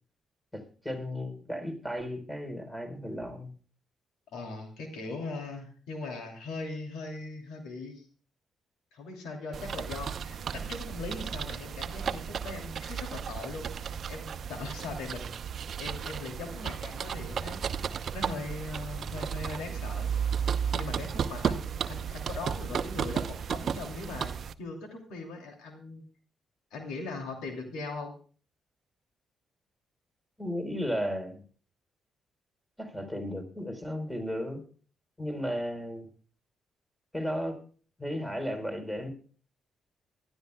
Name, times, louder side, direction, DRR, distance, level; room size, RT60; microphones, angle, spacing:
voice 1, 0.5-3.5 30.4-31.4 32.8-34.6 35.2-36.1 37.1-37.6 38.0-39.1, equal, 5° left, 5 dB, 3.9 m, -34 dB
voice 2, 4.3-8.1 8.9-15.3 15.8-20.1 20.7-24.3 24.6-26.0 26.7-28.1, left 3 dB, 85° left, 3 dB, 2.8 m, -40 dB
sound 1, 9.5-24.5, right 7 dB, 60° right, 0.7 m, -34 dB
23.0 x 12.5 x 2.2 m, 0.41 s
cardioid pair, 70°, 0 cm